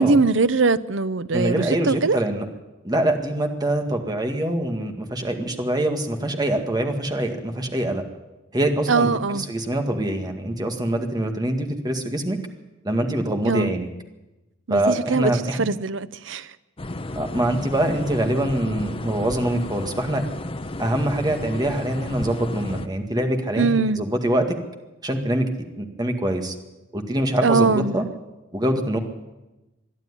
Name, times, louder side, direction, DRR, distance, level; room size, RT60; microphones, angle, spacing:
voice 1, 0.0-2.2 8.9-9.5 13.4-13.7 14.7-15.3 15.6-16.5 23.6-24.0 27.4-28.0, right 4 dB, 70° right, 0.8 m, -21 dB
voice 2, 1.3-2.5 2.8-8.0 8.5-12.4 12.8-13.9 14.7-15.6 17.2-20.2 20.8-24.6 25.0-25.5 25.8-26.6 26.9-28.0 28.5-29.0, right 1 dB, 20° right, 2.0 m, -24 dB
sound 1, 16.8-22.9, left 2 dB, 30° left, 0.9 m, -32 dB
22.5 x 12.5 x 9.9 m
head